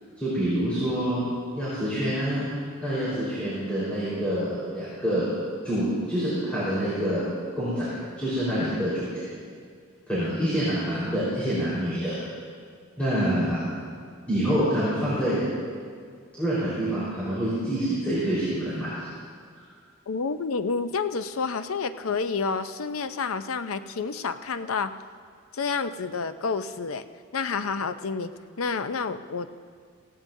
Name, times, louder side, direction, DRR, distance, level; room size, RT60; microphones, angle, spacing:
voice 1, 0.2-1.2 1.5-2.5 2.8-5.3 5.6-7.2 7.6-7.9 8.2-9.1 10.1-12.2 13.0-13.6 14.3-15.4 16.4-19.1, equal, 5° left, -12 dB, 4.3 m, -26 dB
voice 2, 20.1-25.0 25.5-27.0 27.3-29.5, left 5 dB, 85° left, 11 dB, 0.6 m, -29 dB
17.5 x 16.5 x 2.7 m, 2.1 s
head